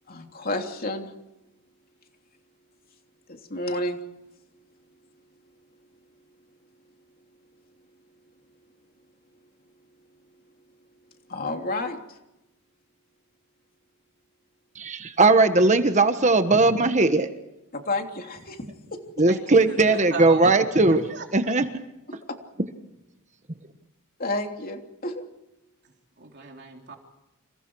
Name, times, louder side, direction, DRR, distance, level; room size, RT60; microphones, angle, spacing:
voice 1, 0.1-1.1 3.3-4.0 11.3-12.0 17.7-18.6 18.9-19.0 22.1-22.2 24.2-25.2, left 2 dB, 40° left, 3 dB, 3.2 m, -30 dB
voice 2, 14.8-17.3 19.2-21.0 21.3-21.8, right 3 dB, 30° right, 8 dB, 1.4 m, -19 dB
voice 3, 19.7-20.5 20.9-21.5 26.2-27.0, right 4 dB, 50° right, 2 dB, 3.4 m, -37 dB
30.0 x 28.0 x 4.8 m, 0.92 s
head